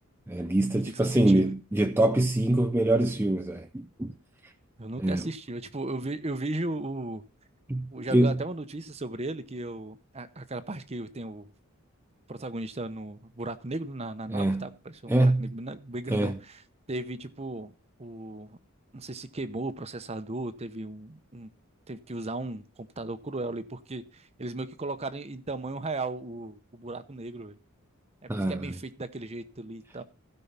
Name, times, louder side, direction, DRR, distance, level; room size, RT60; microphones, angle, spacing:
voice 1, 0.3-4.1 4.4-4.5 5.0-5.3 7.7-8.4 14.3-14.7 15.1-15.5 16.1-16.4 28.3-28.7, right 1 dB, 10° right, 0.5 m, -25 dB
voice 2, 0.9-1.4 4.8-7.2 7.9-11.5 12.3-16.6 16.9-17.7 18.0-18.6 18.9-21.5 21.9-27.6 28.3-30.0, right 2 dB, 30° right, 0.9 m, -36 dB
16.0 x 5.5 x 5.7 m
head